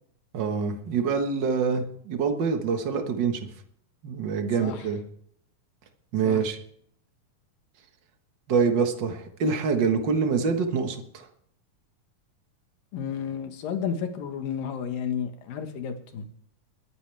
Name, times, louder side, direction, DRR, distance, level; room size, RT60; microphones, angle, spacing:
voice 1, 0.3-3.4 4.0-5.0 6.1-6.6 8.5-11.3, right 5 dB, 50° right, 6 dB, 1.3 m, -25 dB
voice 2, 12.9-16.2, left 7 dB, 80° left, 7 dB, 3.2 m, -32 dB
21.0 x 11.0 x 3.4 m, 0.67 s
omnidirectional pair, 3.9 m